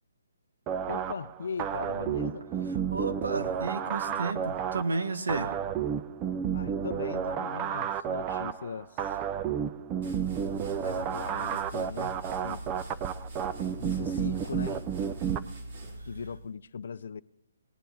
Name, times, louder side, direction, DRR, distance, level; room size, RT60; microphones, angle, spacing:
sound 1, 0.7-15.4, right 8 dB, 20° right, 0.5 m, -32 dB
voice 1, 0.9-2.5 6.5-9.2 10.8-12.6 13.8-14.9 16.1-17.2, left 6 dB, 60° left, 0.5 m, -39 dB
voice 2, 2.7-5.5 16.0-16.1, right 3 dB, 80° right, 1.5 m, -32 dB
sound 2, 10.0-16.5, right 1 dB, 50° right, 2.7 m, -43 dB
18.5 x 9.3 x 4.1 m
hypercardioid pair, 150°, 0 cm